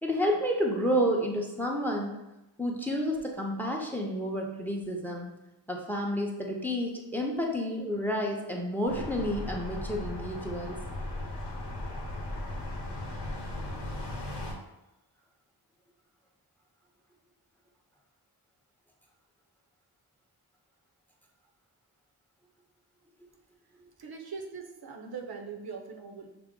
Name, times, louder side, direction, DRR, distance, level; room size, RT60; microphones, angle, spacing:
voice 1, 0.0-2.1 2.6-5.3 5.7-10.8, equal, 5° left, 0 dB, 0.6 m, -30 dB
sound 1, 8.8-14.5, left 1 dB, 85° left, 1.0 m, -37 dB
voice 2, 24.0-26.3, right 5 dB, 65° right, 3 dB, 0.6 m, -41 dB
5.9 x 2.0 x 3.6 m, 0.92 s
wide cardioid pair, 75°, 40 cm